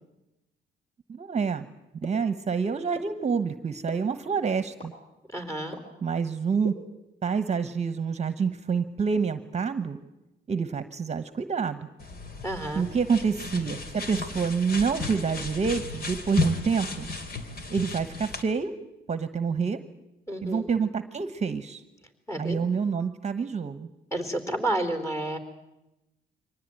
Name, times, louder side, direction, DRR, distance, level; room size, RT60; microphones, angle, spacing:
voice 1, 1.1-1.7 2.0-4.9 6.0-6.8 7.2-10.0 10.5-11.9 12.7-17.1 17.7-18.7 19.1-19.8 20.4-21.8 22.4-23.9, right 5 dB, 35° right, 10 dB, 1.2 m, -27 dB
sound 1, 2.0-2.1 2.9-3.0 3.9-4.0 4.8-4.9 5.7-5.8 6.6-6.7, equal, 30° left, 4.7 m, -37 dB
voice 2, 5.3-5.8 12.4-12.8 20.3-20.7 22.3-22.6 24.1-25.4, right 1 dB, 15° left, 6 dB, 4.0 m, -30 dB
sound 2, 12.0-18.4, left 3 dB, 50° left, 2.9 m, -34 dB
24.0 x 19.0 x 9.0 m, 0.95 s
cardioid pair, 90°, 20 cm